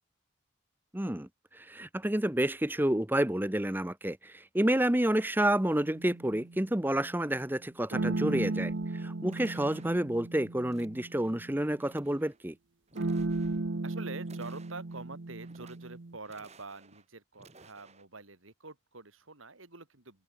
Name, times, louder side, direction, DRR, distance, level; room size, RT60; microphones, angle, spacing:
voice 1, 0.9-12.5, right 1 dB, 10° right, 0.9 m, -29 dB
sound 1, 5.8-6.8 7.9-12.0 12.9-16.2, right 2 dB, 60° right, 0.9 m, -35 dB
sound 2, 8.1-8.8 9.3-10.2 10.7-11.3 11.6-12.4 12.9-13.6 14.2-15.0 15.4-16.0 16.2-17.1 17.3-18.1, right 3 dB, 35° right, 5.1 m, -57 dB
voice 2, 13.8-20.2, right 3 dB, 75° right, 3.6 m, -46 dB
head